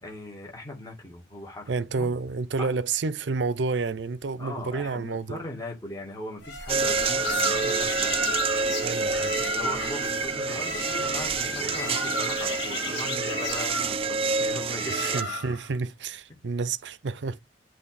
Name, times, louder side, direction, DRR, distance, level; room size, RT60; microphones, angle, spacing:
voice 1, 0.0-2.1 2.6-2.7 4.4-8.2 9.4-15.4, left 1 dB, 20° left, 2.3 m, -39 dB
voice 2, 1.7-5.4 8.8-9.3 14.9-17.4, right 4 dB, 80° right, 0.6 m, -30 dB
sound 1, 6.4-15.7, left 2 dB, 80° left, 1.6 m, -33 dB
sound 2, 6.7-15.2, right 5 dB, 30° right, 0.4 m, -28 dB
7.9 x 3.2 x 4.0 m
head